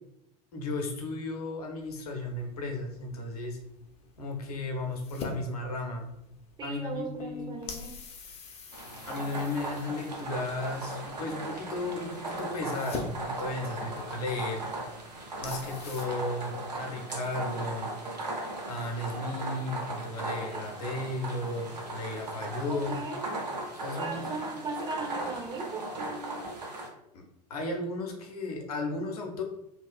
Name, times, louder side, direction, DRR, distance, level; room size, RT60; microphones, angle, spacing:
voice 1, 0.5-3.6 4.2-6.1 6.6-7.6 9.1-14.6 15.4-17.9 18.7-23.0 23.7-24.3 27.1-27.2 27.5-29.4, left 2 dB, 65° left, 2 dB, 0.7 m, -34 dB
sound 1, 1.8-16.1, left 3 dB, 30° left, 0.5 m, -46 dB
voice 2, 6.6-8.0 22.7-23.2 24.0-26.6, right 3 dB, 20° right, 2 dB, 0.6 m, -37 dB
sound 2, 8.7-26.9, right 2 dB, 75° right, 0.7 m, -38 dB
3.0 x 2.3 x 2.3 m, 0.83 s
figure-of-eight pair, 80°, 21 cm